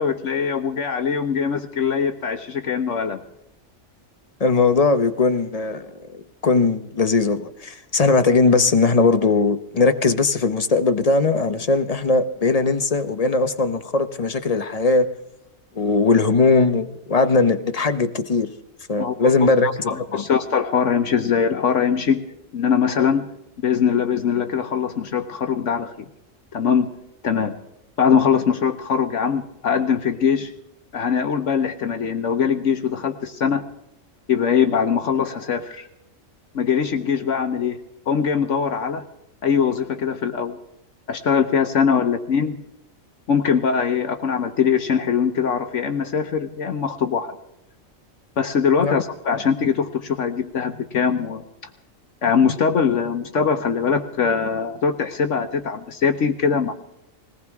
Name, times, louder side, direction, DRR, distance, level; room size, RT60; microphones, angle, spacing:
voice 1, 0.0-3.2 19.0-19.3 19.6-22.2 22.5-23.3 23.6-25.9 26.5-26.9 27.2-27.5 28.0-30.5 30.9-33.6 34.3-35.9 36.5-37.8 38.1-39.0 39.4-40.6 41.1-42.6 43.3-47.3 48.4-51.4 52.2-56.7, left 6 dB, 65° left, 7 dB, 1.2 m, -22 dB
voice 2, 4.4-15.1 15.8-18.5 18.9-20.2 48.8-48.9, left 3 dB, 35° left, 9 dB, 0.8 m, -19 dB
21.0 x 18.5 x 3.6 m, 0.83 s
omnidirectional pair, 1.4 m